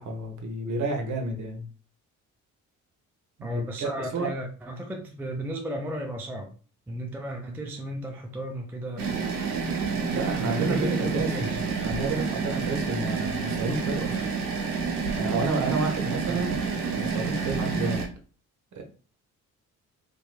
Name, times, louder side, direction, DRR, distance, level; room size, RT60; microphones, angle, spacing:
voice 1, 0.0-1.7 3.4-4.3 10.1-11.5 11.8-14.3 15.2-16.6 16.9-18.0 18.8-18.9, right 3 dB, 45° right, 0.9 m, -30 dB
voice 2, 3.4-6.5 6.9-9.1 10.5-11.6, equal, 5° right, 0.3 m, -34 dB
sound 1, 9.0-18.1, right 5 dB, 90° right, 0.5 m, -29 dB
2.9 x 2.3 x 2.3 m
figure-of-eight pair, 45°, 44 cm